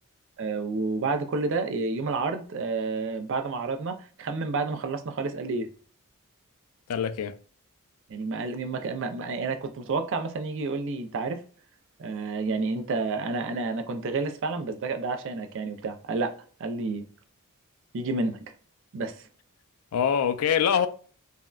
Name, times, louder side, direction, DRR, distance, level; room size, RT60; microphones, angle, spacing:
voice 1, 0.4-5.7 8.1-11.4 12.0-16.3 16.6-17.0 17.9-18.4 18.9-19.2, right 3 dB, 60° right, 0.4 m, -30 dB
voice 2, 6.9-7.3 19.9-20.9, left 8 dB, 85° left, 0.3 m, -24 dB
3.5 x 2.1 x 2.3 m
head